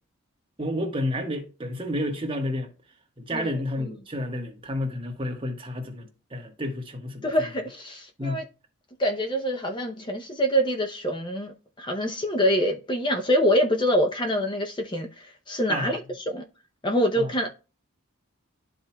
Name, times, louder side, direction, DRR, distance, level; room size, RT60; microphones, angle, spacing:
voice 1, 0.6-2.7 3.2-7.5 8.2-8.4 15.7-15.9 17.2-17.3, left 1 dB, 25° right, 1.2 m, -30 dB
voice 2, 7.2-8.4 9.0-16.0 16.3-16.4 16.8-17.5, equal, 20° left, 0.6 m, -25 dB
12.5 x 4.2 x 2.2 m
head